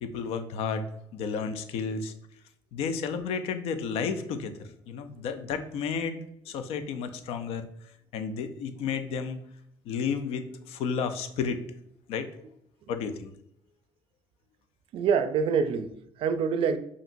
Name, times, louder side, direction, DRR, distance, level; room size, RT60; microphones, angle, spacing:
voice 1, 0.0-2.1 2.7-6.2 6.5-7.7 8.1-9.4 9.9-11.7 12.1-12.3 12.9-13.3, left 6 dB, 75° left, 9 dB, 0.5 m, -32 dB
voice 2, 14.9-16.8, right 6 dB, 60° right, 10 dB, 0.4 m, -26 dB
5.0 x 2.8 x 2.6 m, 0.73 s
cardioid pair, 115°, 10 cm